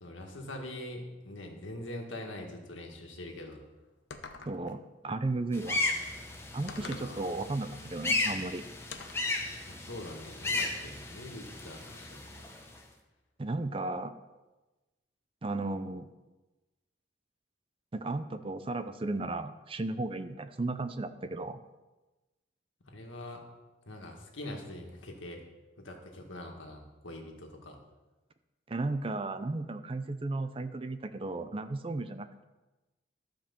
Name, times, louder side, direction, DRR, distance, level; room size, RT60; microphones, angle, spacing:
voice 1, 0.0-3.6 6.6-7.2 9.7-12.6 22.9-23.4 23.9-25.4 25.8-27.8, left 1 dB, 85° left, 2 dB, 1.8 m, -43 dB
sound 1, 4.1-4.8 6.7-7.1 8.9-9.3, left 5 dB, 65° left, 0.8 m, -45 dB
voice 2, 4.5-5.8 6.5-8.6 13.4-14.1 15.4-16.1 17.9-21.6 28.7-32.4, right 2 dB, 30° right, 10 dB, 0.5 m, -34 dB
sound 2, 5.5-12.8, left 2 dB, 15° left, 1.0 m, -35 dB
12.0 x 5.1 x 7.0 m, 1.1 s
head